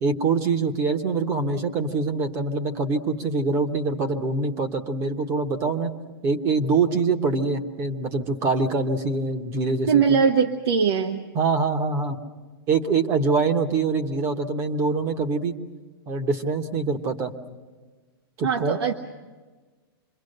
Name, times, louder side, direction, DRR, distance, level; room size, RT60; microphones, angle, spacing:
voice 1, 0.0-6.0 6.2-10.2 11.3-12.2 12.7-15.6 16.1-17.3 18.4-18.8, right 4 dB, 20° right, 7 dB, 1.0 m, -24 dB
voice 2, 9.9-11.2 18.4-18.9, right 6 dB, 90° right, 5 dB, 1.3 m, -21 dB
26.5 x 22.5 x 6.6 m, 1.4 s
supercardioid pair, 175°, 13 cm